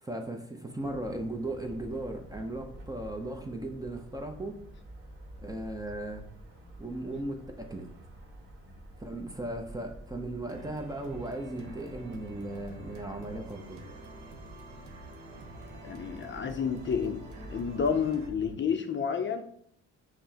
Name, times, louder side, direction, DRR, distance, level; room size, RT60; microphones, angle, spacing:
voice 1, 0.0-4.6 5.4-6.3 6.8-7.9 9.0-13.9, right 1 dB, 10° right, 3 dB, 0.5 m, -37 dB
sound 1, 0.8-18.6, right 1 dB, 40° right, 1.3 m, -48 dB
sound 2, 10.5-18.3, right 2 dB, 80° right, 0.9 m, -48 dB
voice 2, 15.8-17.2 17.5-19.4, left 6 dB, 40° left, 5 dB, 0.5 m, -30 dB
6.0 x 2.1 x 2.7 m, 0.64 s
cardioid pair, 90°, 30 cm